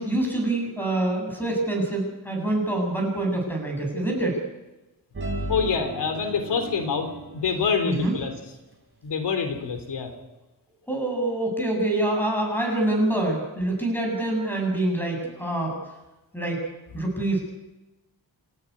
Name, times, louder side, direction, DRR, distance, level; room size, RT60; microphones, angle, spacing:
voice 1, 0.0-4.4 7.8-8.1 10.9-15.8 16.3-16.6 16.9-17.4, right 1 dB, 5° left, 1 dB, 7.8 m, -25 dB
sound 1, 5.1-7.5 7.9-8.2, right 2 dB, 30° right, 4.3 m, -35 dB
voice 2, 5.5-8.3 9.0-10.1, left 5 dB, 85° left, 7 dB, 3.6 m, -26 dB
28.5 x 13.0 x 9.8 m, 1.0 s
wide cardioid pair, 165°, 40 cm